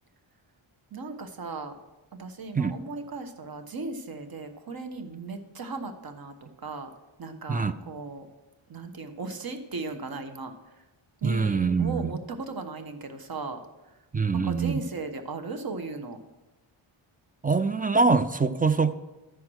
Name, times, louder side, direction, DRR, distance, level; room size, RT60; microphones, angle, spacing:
voice 1, 0.9-1.7 2.1-6.9 7.2-8.3 8.7-10.5 11.2-13.6 14.3-16.2, right 3 dB, 45° right, 7 dB, 1.2 m, -37 dB
voice 2, 11.2-12.2 14.1-14.8 17.4-18.9, right 4 dB, 20° right, 11 dB, 0.4 m, -24 dB
13.5 x 4.7 x 6.3 m, 1.1 s
wide cardioid pair, 100°, 49 cm